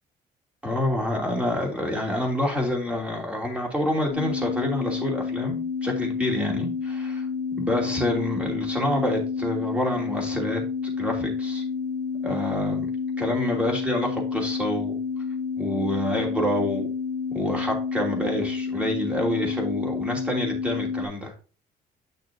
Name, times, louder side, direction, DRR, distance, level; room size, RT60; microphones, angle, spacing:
voice 1, 0.6-7.2 7.6-10.6 11.0-11.6 12.2-12.9 13.2-15.0 15.6-16.9 17.3-21.3, left 1 dB, 5° right, 0 dB, 2.9 m, -27 dB
sound 1, 4.1-21.0, left 5 dB, 60° left, 2.0 m, -29 dB
8.4 x 6.7 x 2.8 m, 0.36 s
cardioid pair, 110°, 17 cm